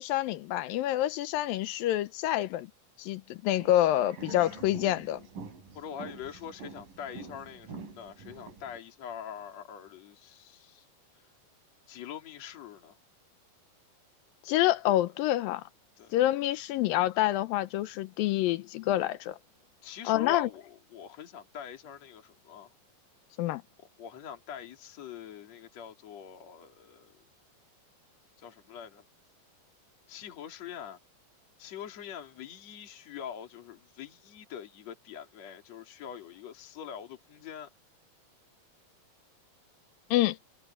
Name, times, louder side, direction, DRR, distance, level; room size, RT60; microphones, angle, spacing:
voice 1, 0.0-2.7 3.0-5.2 14.5-15.6 16.1-19.4 20.1-20.5 23.4-23.6 40.1-40.4, left 14 dB, 80° left, 2.3 m, -27 dB
sound 1, 3.5-8.8, right 4 dB, 60° right, 4.8 m, -46 dB
voice 2, 5.8-10.9 11.9-13.0 14.9-15.0 16.0-16.1 19.8-22.7 24.0-27.2 28.4-29.0 30.1-31.0 31.6-37.7, left 9 dB, 45° left, 3.7 m, -44 dB
omnidirectional pair, 4.4 m